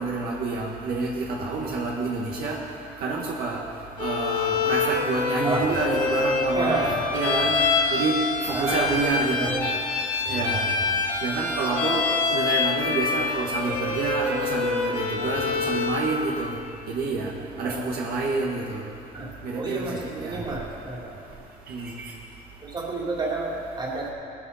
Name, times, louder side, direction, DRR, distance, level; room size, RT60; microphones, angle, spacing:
voice 1, 0.0-2.6 3.0-3.6 4.0-7.6 7.9-9.6 10.3-10.7 11.2-12.0 12.3-16.5 16.9-17.3 17.6-18.8 19.4-20.4 21.7-21.9, right 3 dB, 65° right, -2 dB, 1.7 m, -28 dB
Bowed string instrument, 4.0-16.1, left 4 dB, 50° left, 2.3 m, -26 dB
voice 2, 6.5-7.1 8.5-8.9 9.4-9.7 10.2-10.7 15.2-15.3 17.6-17.8 19.1-21.1 22.6-24.1, right 3 dB, 30° right, -3 dB, 2.8 m, -30 dB
18.5 x 14.0 x 4.2 m, 2.7 s
cardioid pair, 150°, 16 cm